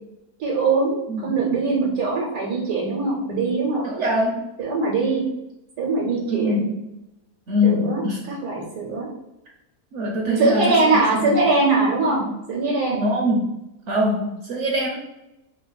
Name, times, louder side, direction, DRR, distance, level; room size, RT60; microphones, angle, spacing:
voice 1, 0.4-3.9 4.6-5.2 5.8-6.7 7.6-9.1 10.2-13.0, right 3 dB, 85° right, -3 dB, 1.4 m, -22 dB
voice 2, 3.8-4.4 6.3-6.6 7.5-8.2 9.9-10.8 11.1-11.4 13.0-13.5 13.9-15.0, left 1 dB, 60° right, -1 dB, 0.8 m, -23 dB
3.3 x 2.3 x 3.9 m, 0.90 s
omnidirectional pair, 1.7 m